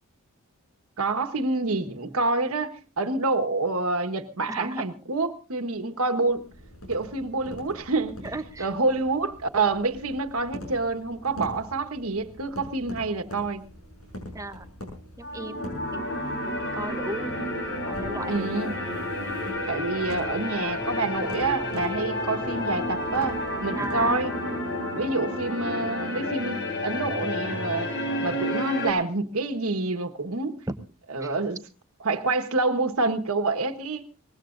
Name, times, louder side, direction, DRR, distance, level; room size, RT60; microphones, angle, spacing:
voice 1, 1.0-6.4 6.9-8.2 8.6-13.6 18.3-18.8 19.7-24.3 24.9-27.9 28.2-30.6 31.1-31.6 32.0-34.0, right 3 dB, 75° right, 1.4 m, -27 dB
voice 2, 4.5-4.8 8.2-8.7 14.3-14.7 15.2-17.4 17.8-18.5 23.7-24.2 31.2-31.3, right 2 dB, 15° right, 0.8 m, -36 dB
sound 1, 6.2-24.1, left 1 dB, 75° left, 6.5 m, -44 dB
sound 2, 15.2-28.9, left 1 dB, 55° left, 3.8 m, -30 dB
23.0 x 19.5 x 2.6 m
head